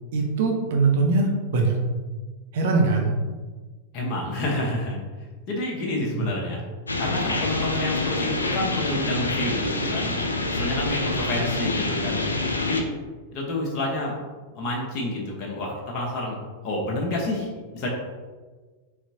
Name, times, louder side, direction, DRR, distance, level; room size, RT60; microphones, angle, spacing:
voice 1, 0.1-1.7 2.5-3.1 6.2-6.3, right 3 dB, 55° right, 1 dB, 0.7 m, -22 dB
voice 2, 3.9-5.0 5.5-6.6 7.0-10.2 10.5-12.3 12.6-12.8 13.3-14.2 14.5-16.4 16.6-17.9, left 2 dB, 40° left, -2 dB, 1.0 m, -29 dB
sound 1, 6.9-12.8, left 2 dB, 80° left, 0.4 m, -26 dB
4.3 x 4.1 x 2.7 m, 1.4 s
figure-of-eight pair, 90°, 0 cm